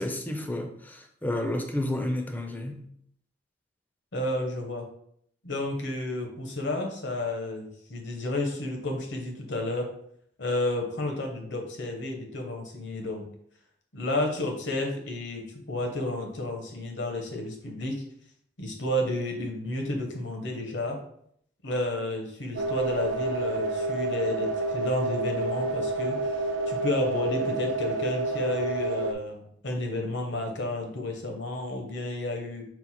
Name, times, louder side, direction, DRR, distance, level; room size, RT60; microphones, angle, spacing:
voice 1, 0.0-2.8, left 1 dB, 10° left, 0.4 m, -31 dB
voice 2, 4.1-4.9 5.4-9.9 10.4-13.3 13.9-18.0 18.6-21.0 21.6-26.4 26.7-32.7, left 1 dB, 75° left, 0.9 m, -31 dB
sound 1, 22.6-29.1, right 2 dB, 85° right, 0.4 m, -29 dB
4.5 x 2.0 x 4.2 m
head